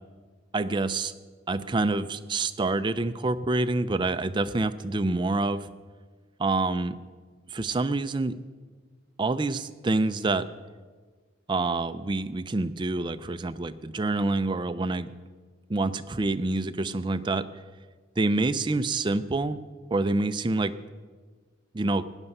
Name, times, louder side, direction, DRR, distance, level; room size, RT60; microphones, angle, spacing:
voice 1, 0.5-1.1 1.5-5.7 6.4-7.0 7.5-8.3 9.2-10.5 11.5-15.1 15.7-17.5 18.2-19.6 19.9-20.8 21.7-22.1, right 2 dB, 20° right, 11 dB, 0.4 m, -27 dB
16.5 x 9.9 x 5.4 m, 1.5 s
head